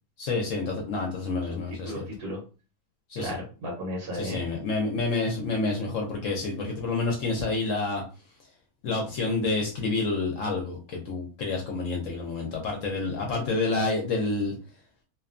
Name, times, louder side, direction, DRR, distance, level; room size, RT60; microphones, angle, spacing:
voice 1, 0.2-2.1 3.1-3.4 4.1-8.0 8.8-14.6, left 3 dB, 65° left, 0 dB, 0.9 m, -28 dB
voice 2, 1.4-2.4 3.2-4.4, equal, 80° right, -2 dB, 1.3 m, -35 dB
2.8 x 2.2 x 2.4 m, 0.35 s
omnidirectional pair, 1.6 m